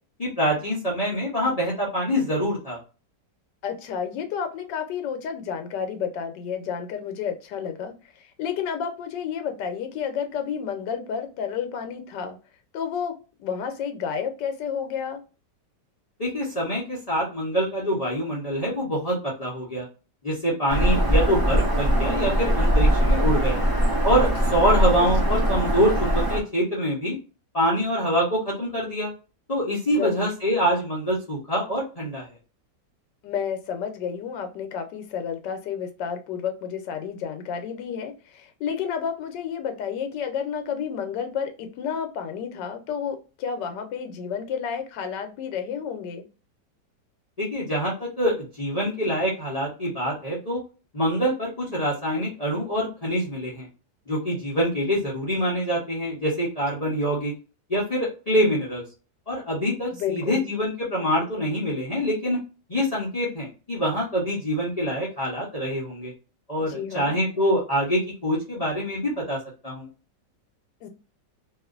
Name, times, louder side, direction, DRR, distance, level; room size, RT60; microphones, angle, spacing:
voice 1, 0.2-2.8 16.2-19.9 20.2-23.7 24.0-27.2 27.5-29.1 29.5-32.3 47.4-50.6 50.9-53.7 54.1-57.3 57.7-58.8 59.3-62.4 62.7-66.1 66.5-69.4 69.6-69.9, equal, 45° left, 0.5 m, -25 dB
voice 2, 3.6-12.4 12.7-15.2 25.0-25.5 29.9-30.3 33.2-46.3 60.0-60.5 66.6-67.2 70.8-70.9, left 7 dB, 80° left, 1.2 m, -31 dB
Bird vocalization bird call bird song, 20.7-26.4, equal, 20° right, 0.6 m, -21 dB
2.9 x 2.4 x 2.3 m
omnidirectional pair, 1.9 m